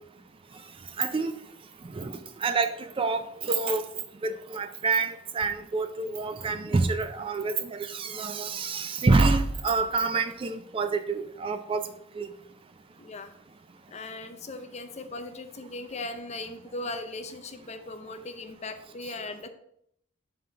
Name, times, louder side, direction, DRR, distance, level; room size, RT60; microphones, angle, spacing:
voice 1, 1.0-1.3 1.9-3.9 4.2-11.9 12.2-12.3, right 3 dB, 25° right, 9 dB, 0.3 m, -27 dB
voice 2, 13.0-13.3 13.9-19.5, left 2 dB, 30° left, 8 dB, 0.6 m, -38 dB
5.7 x 3.8 x 5.6 m, 0.72 s
head